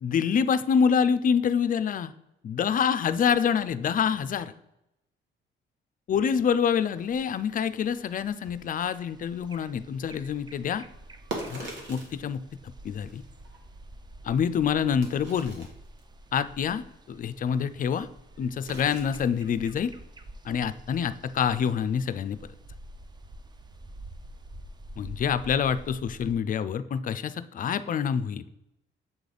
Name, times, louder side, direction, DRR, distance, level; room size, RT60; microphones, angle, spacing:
voice 1, 0.0-2.1 2.4-4.5 6.1-10.8 11.5-12.4 12.8-13.2 14.2-15.7 16.3-18.1 18.4-19.9 20.4-22.4 25.0-28.4, left 7 dB, 45° left, 13 dB, 0.4 m, -26 dB
sound 1, 6.6-26.3, right 1 dB, 20° right, 0.4 m, -48 dB
sound 2, 8.4-8.7 10.8-12.2 12.7-14.2 14.6-14.7 15.0-16.0 18.7-19.3 19.6-19.7, right 2 dB, 65° right, 1.5 m, -41 dB
7.3 x 3.3 x 3.9 m, 0.88 s
cardioid pair, 90°, 20 cm